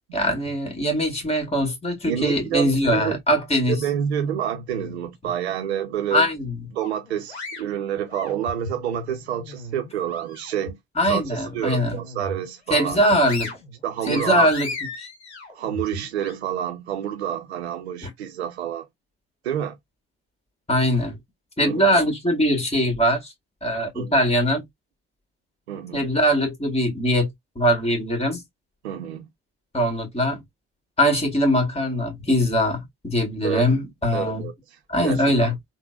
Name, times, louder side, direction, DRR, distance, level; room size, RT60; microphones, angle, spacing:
voice 1, 0.1-3.8 6.1-6.6 11.0-12.0 12.7-13.5 14.1-14.7 18.0-18.1 20.7-21.2 21.6-23.3 23.6-24.6 25.9-27.3 27.6-28.4 29.7-30.4 31.0-34.5 34.9-35.5, equal, 20° left, 1.7 m, -21 dB
voice 2, 2.1-3.2 3.7-6.3 6.7-10.8 11.1-13.0 13.8-14.5 15.5-18.9 19.4-19.8 21.6-21.9 23.9-24.2 25.7-26.1 28.8-29.3 33.4-33.7 34.1-34.5 35.0-35.3, right 9 dB, 85° right, 0.6 m, -28 dB
sound 1, 6.8-8.8 9.2-10.7 11.1-11.2 11.7-12.5 12.9-16.3, left 2 dB, 90° left, 0.8 m, -36 dB
3.7 x 2.2 x 2.4 m
hypercardioid pair, 55°, 32 cm